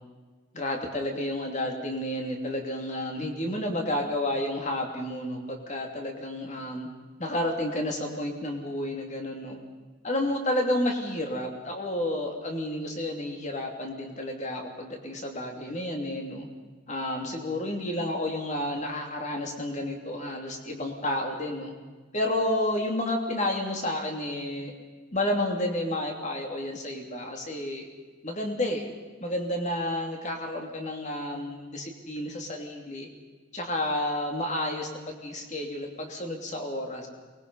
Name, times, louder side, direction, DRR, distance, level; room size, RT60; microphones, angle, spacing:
voice 1, 0.5-6.9 7.2-9.6 10.0-16.5 16.9-21.7 22.1-24.7 25.1-27.9 28.2-28.9 29.2-33.1 33.5-37.1, left 1 dB, 35° left, 2 dB, 2.8 m, -31 dB
23.5 x 20.5 x 5.5 m, 1.4 s
head